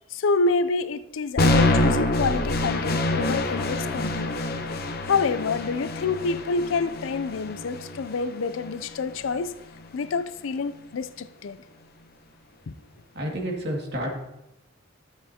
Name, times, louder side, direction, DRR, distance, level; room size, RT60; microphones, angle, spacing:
voice 1, 0.1-4.3 5.0-9.5 9.9-11.6 12.7-12.8, left 4 dB, 75° left, 0.4 m, -27 dB
sound 1, 1.4-9.4, left 1 dB, 50° left, 0.8 m, -26 dB
voice 2, 12.9-14.2, equal, 60° right, 2.2 m, -30 dB
12.5 x 7.9 x 2.8 m
head